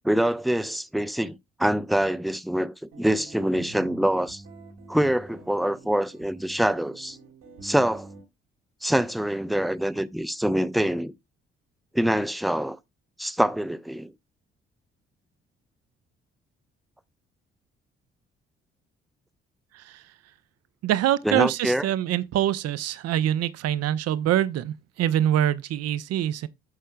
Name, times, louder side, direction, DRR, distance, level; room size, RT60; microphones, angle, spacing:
voice 1, 0.0-1.3 1.6-4.4 4.9-7.2 7.6-8.1 8.8-11.1 11.9-12.8 13.2-14.1 21.3-21.8, right 1 dB, ahead, 0.5 m, -25 dB
II-V-I Bossa Nova Guitar, 2.9-8.2, right 3 dB, 75° right, 1.8 m, -47 dB
voice 2, 19.7-20.1 20.8-26.5, right 11 dB, 50° right, 0.6 m, -25 dB
13.0 x 5.5 x 2.2 m
figure-of-eight pair, 40°, 31 cm